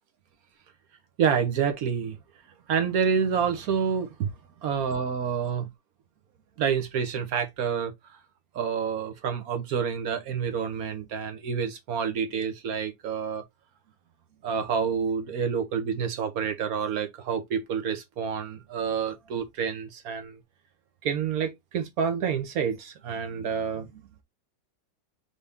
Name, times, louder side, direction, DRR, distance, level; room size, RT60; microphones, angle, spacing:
voice 1, 1.2-2.2 2.7-4.3 4.6-5.7 6.6-8.2 8.5-13.4 14.4-20.4 21.0-24.0, right 7 dB, 55° right, 1.3 m, -28 dB
4.1 x 3.5 x 3.5 m
omnidirectional pair, 2.0 m